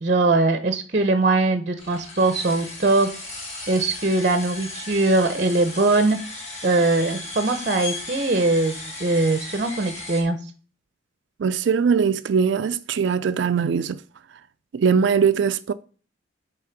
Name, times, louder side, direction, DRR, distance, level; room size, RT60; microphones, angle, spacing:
voice 1, 0.0-3.1 3.7-6.2 6.6-10.4, right 2 dB, 40° right, 0.7 m, -21 dB
sound 1, 1.8-10.2, left 2 dB, 35° left, 2.1 m, -36 dB
voice 2, 11.4-14.0 14.7-15.7, right 6 dB, 65° right, 0.4 m, -21 dB
8.3 x 3.5 x 5.9 m
head